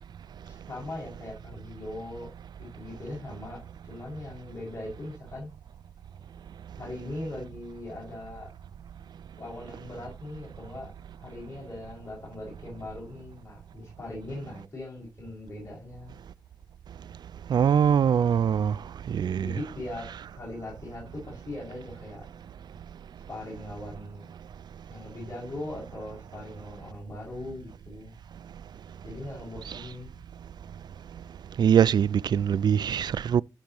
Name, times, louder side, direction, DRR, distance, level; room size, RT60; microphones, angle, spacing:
voice 1, 0.4-2.3 2.6-5.5 6.8-8.5 9.4-10.9 11.2-16.1 19.4-20.1 20.3-22.2 23.3-24.2 24.9-28.1 29.0-30.2, left 2 dB, 35° left, 5.9 m, -40 dB
voice 2, 17.5-18.7 19.1-19.5 31.6-33.4, right 8 dB, 75° right, 0.3 m, -22 dB
14.5 x 5.3 x 3.0 m
cardioid pair, 80°, 7 cm